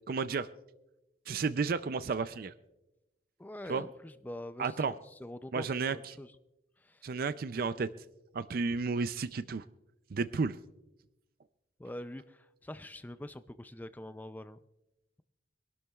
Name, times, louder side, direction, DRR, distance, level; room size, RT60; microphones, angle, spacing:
voice 1, 0.1-0.5 1.3-2.5 3.7-3.8 4.6-4.9 5.5-6.0 7.0-7.9 8.3-9.6 10.1-10.6, right 4 dB, 55° right, 12 dB, 0.4 m, -32 dB
voice 2, 3.4-6.4 6.8-7.1 11.8-14.6, left 1 dB, 10° left, 12 dB, 0.4 m, -45 dB
25.5 x 12.0 x 2.3 m, 0.95 s
head